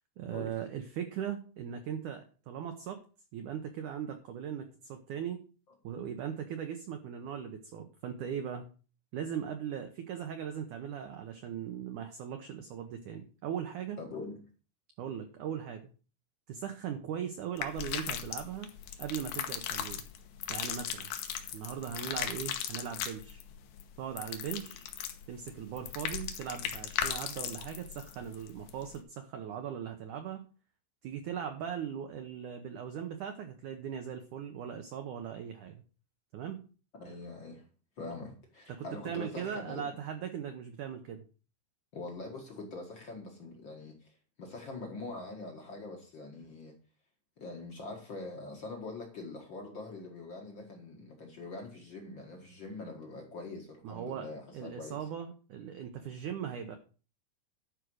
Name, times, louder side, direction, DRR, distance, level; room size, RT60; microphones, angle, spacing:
voice 1, 0.2-3.0 3.3-5.4 5.8-8.7 9.1-14.0 15.0-15.9 16.5-18.7 19.0-20.0 20.5-21.1 21.5-23.4 24.0-24.9 25.3-30.5 31.0-35.8 36.3-36.6 38.7-41.2 53.8-54.3 54.5-56.8, right 8 dB, 80° right, 6 dB, 1.8 m, -39 dB
voice 2, 14.0-14.4 37.0-37.6 38.0-39.9 41.9-46.7 47.4-55.0, left 3 dB, 55° left, 2 dB, 1.3 m, -43 dB
sound 1, 17.6-29.0, left 10 dB, 80° left, 3.3 m, -38 dB
12.0 x 5.1 x 6.3 m, 0.37 s
omnidirectional pair, 4.9 m